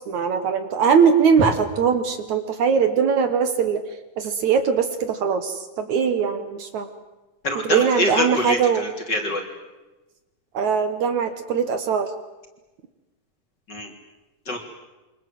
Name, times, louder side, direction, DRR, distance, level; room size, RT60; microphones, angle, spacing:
voice 1, 0.0-3.8 4.2-6.9 7.6-8.9 10.5-12.1, right 6 dB, 60° right, 9 dB, 2.1 m, -21 dB
voice 2, 7.4-9.4 13.7-13.9 14.5-14.6, left 1 dB, 25° left, 2 dB, 3.3 m, -25 dB
28.0 x 25.0 x 7.8 m, 1.1 s
omnidirectional pair, 4.8 m